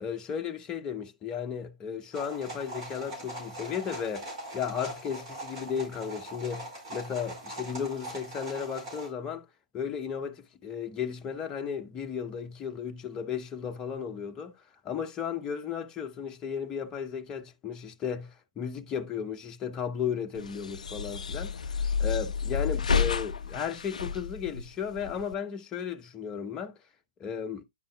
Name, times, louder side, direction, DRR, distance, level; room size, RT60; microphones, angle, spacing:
voice 1, 0.0-9.5 9.7-14.6 14.8-26.8 27.2-27.6, left 7 dB, 20° left, 0.8 m, -35 dB
sound 1, 2.1-9.1, right 1 dB, 45° right, 4.8 m, -41 dB
sound 2, 20.4-25.3, left 6 dB, 70° left, 0.4 m, -30 dB
9.9 x 5.5 x 2.2 m
figure-of-eight pair, 115°, 4 cm